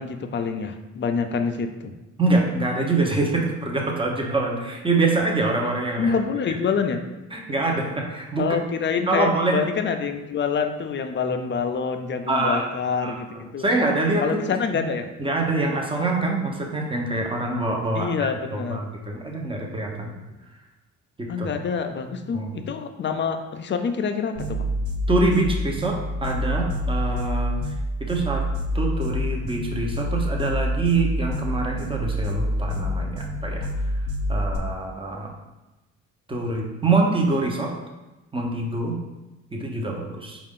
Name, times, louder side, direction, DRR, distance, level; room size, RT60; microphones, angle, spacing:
voice 1, 0.0-1.9 6.0-7.0 8.4-13.7 14.2-15.1 18.0-18.8 21.3-24.7, left 5 dB, 40° left, 6 dB, 0.5 m, -26 dB
voice 2, 2.2-6.1 7.3-8.6 9.0-9.6 12.3-12.7 13.0-14.4 14.7-14.9 15.2-20.1 21.2-21.5 22.3-22.6 25.1-27.7 28.0-28.4 28.7-33.7 34.3-35.3 36.3-37.7 38.3-39.0 39.5-40.4, right 2 dB, 15° right, 0 dB, 0.8 m, -25 dB
sound 1, 24.3-34.6, equal, 50° right, 0.7 m, -27 dB
4.5 x 2.5 x 3.6 m, 1.1 s
cardioid pair, 90°, 30 cm